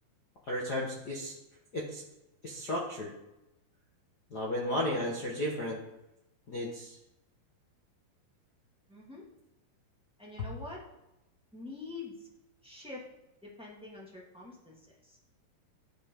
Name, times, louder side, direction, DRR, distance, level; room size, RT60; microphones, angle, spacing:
voice 1, 0.5-1.3 1.7-2.0 2.4-3.1 4.3-5.8 6.5-7.0 10.4-10.5, left 1 dB, 85° left, -4 dB, 0.9 m, -34 dB
voice 2, 8.9-9.2 10.2-10.8 11.5-12.3 12.6-13.0 13.4-15.2, left 3 dB, 10° right, -5 dB, 0.4 m, -45 dB
13.0 x 10.5 x 3.8 m, 0.93 s
omnidirectional pair, 4.8 m